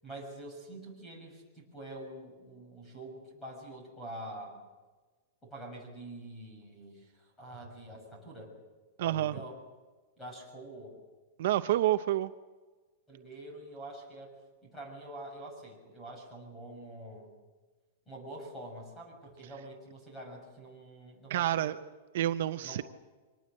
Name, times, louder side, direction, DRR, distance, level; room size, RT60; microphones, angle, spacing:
voice 1, 0.0-4.6 5.4-8.5 9.0-9.6 10.2-11.0 13.1-14.3 14.6-17.3 18.1-21.6 22.6-22.8, right 1 dB, 10° left, 1 dB, 6.3 m, -46 dB
voice 2, 9.0-9.4 11.4-12.3 21.3-21.8 22.1-22.8, right 13 dB, 55° right, 10 dB, 0.7 m, -28 dB
25.0 x 19.5 x 7.6 m, 1.3 s
supercardioid pair, 175°, 0 cm